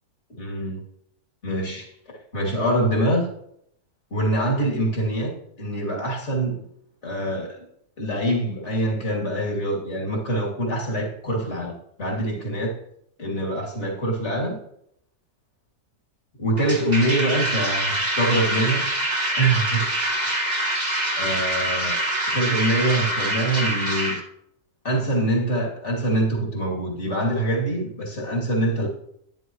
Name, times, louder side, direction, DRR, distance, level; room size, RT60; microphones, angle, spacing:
voice 1, 0.4-0.8 1.4-3.3 4.1-6.7 7.0-7.6 8.0-12.7 13.2-14.6 16.4-18.9 19.4-19.9 21.2-22.0 22.3-24.2 24.8-28.9, right 1 dB, 45° left, -2 dB, 2.9 m, -24 dB
sound 1, 16.6-24.2, right 1 dB, 25° right, 1.9 m, -25 dB
12.5 x 10.0 x 3.1 m, 0.73 s
omnidirectional pair, 1.7 m